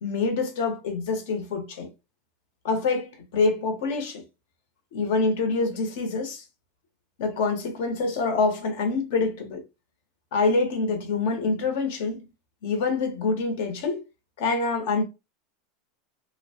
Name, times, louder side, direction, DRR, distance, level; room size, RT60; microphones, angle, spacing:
voice 1, 0.0-1.9 2.6-4.2 4.9-6.4 7.2-9.6 10.3-12.2 12.6-14.0 14.4-15.0, left 3 dB, 70° left, 0.9 m, -26 dB
2.8 x 2.2 x 2.8 m
supercardioid pair, 160°, 0 cm